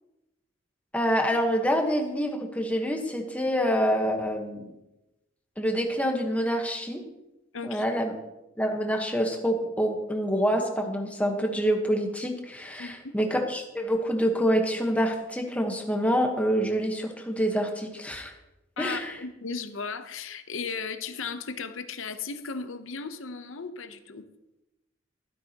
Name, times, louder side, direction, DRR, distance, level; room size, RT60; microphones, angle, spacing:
voice 1, 0.9-4.7 5.6-7.0 7.6-8.1 8.6-18.3 18.8-19.2, equal, 5° left, 3 dB, 1.2 m, -26 dB
voice 2, 7.5-7.8 12.8-13.1 18.8-24.2, left 5 dB, 85° left, 9 dB, 0.8 m, -36 dB
12.5 x 12.0 x 2.9 m, 0.96 s
head